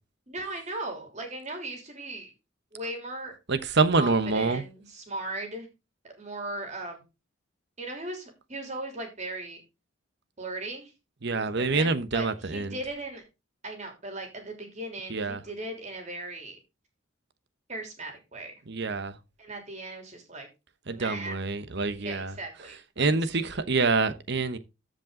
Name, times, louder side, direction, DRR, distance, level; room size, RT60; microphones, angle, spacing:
voice 1, 0.3-2.3 2.7-3.3 4.0-5.7 6.0-7.0 7.8-9.6 10.4-10.9 11.4-13.2 13.6-16.6 17.7-18.5 19.4-20.5 20.9-21.4 22.0-23.1 23.3-23.4, right 2 dB, 35° right, 3.2 m, -38 dB
voice 2, 3.5-4.6 11.2-12.8 15.1-15.4 18.7-19.1 20.9-22.3 23.0-24.6, right 3 dB, 55° right, 1.0 m, -26 dB
14.5 x 5.4 x 3.8 m
head